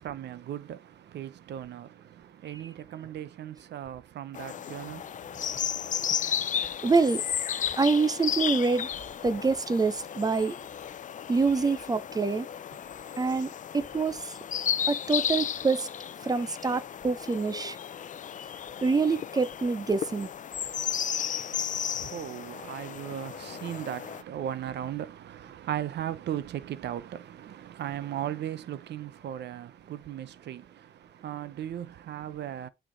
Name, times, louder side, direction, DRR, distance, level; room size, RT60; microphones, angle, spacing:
voice 1, 0.0-5.4 21.4-32.7, right 11 dB, 80° right, 0.8 m, -37 dB
sound 1, 4.3-24.2, left 9 dB, 50° left, 0.5 m, -34 dB
voice 2, 6.8-7.2 7.8-8.9 9.2-10.6 11.3-12.5 13.2-14.4 14.9-15.9 16.2-17.8 18.8-20.3, right 4 dB, 20° right, 0.6 m, -26 dB
9.0 x 4.6 x 3.9 m
wide cardioid pair, 145°, 17 cm